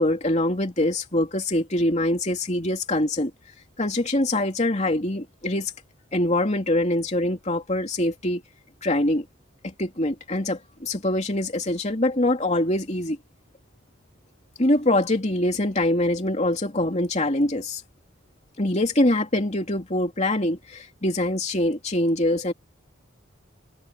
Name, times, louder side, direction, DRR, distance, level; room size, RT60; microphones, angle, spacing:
voice 1, 0.0-3.3 3.8-5.7 6.1-8.4 8.8-9.2 9.6-13.2 14.6-17.8 18.6-22.5, left 1 dB, 35° left, 3.1 m, -24 dB
open air
head